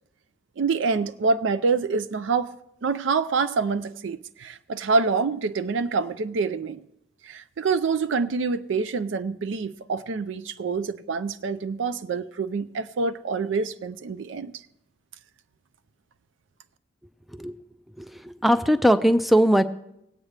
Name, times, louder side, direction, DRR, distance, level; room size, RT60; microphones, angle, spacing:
voice 1, 0.6-2.6 2.8-6.8 7.2-14.5, right 4 dB, 65° right, 0.4 m, -26 dB
voice 2, 18.0-19.6, equal, ahead, 0.4 m, -20 dB
20.0 x 8.7 x 3.2 m
head